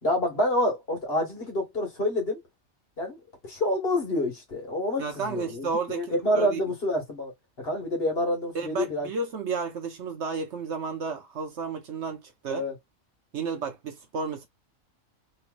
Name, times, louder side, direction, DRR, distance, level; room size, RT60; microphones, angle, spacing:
voice 1, 0.0-2.4 3.0-7.3 7.6-9.1 12.5-12.7, left 1 dB, 45° left, 1.7 m, -28 dB
voice 2, 5.0-6.6 8.5-12.6 13.3-14.5, right 5 dB, 60° right, 0.9 m, -32 dB
3.0 x 3.0 x 2.5 m
omnidirectional pair, 1.4 m